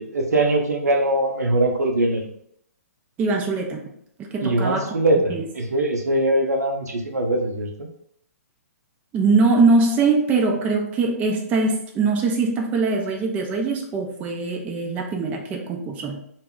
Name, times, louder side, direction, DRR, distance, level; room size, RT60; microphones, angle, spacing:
voice 1, 0.0-2.3 4.4-7.9, right 1 dB, 75° right, 2 dB, 0.6 m, -22 dB
voice 2, 3.2-3.8 4.2-5.0 5.3-5.5 9.1-16.2, right 3 dB, 15° right, 0 dB, 0.4 m, -22 dB
2.2 x 2.0 x 3.6 m, 0.71 s
figure-of-eight pair, 125°, 9 cm